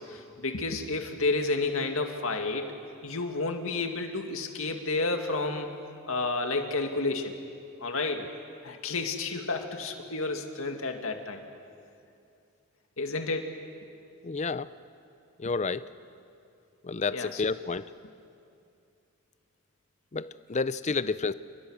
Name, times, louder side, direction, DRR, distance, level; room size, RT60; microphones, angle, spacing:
voice 1, 0.0-2.7 3.0-5.7 6.1-7.4 7.8-8.2 8.6-11.4 13.0-13.5 17.1-17.4, left 3 dB, 65° left, 4 dB, 2.2 m, -31 dB
voice 2, 14.2-14.7 15.4-15.8 16.8-17.8 20.1-21.3, left 4 dB, 30° left, 15 dB, 0.6 m, -30 dB
29.0 x 27.0 x 6.4 m, 2.5 s
head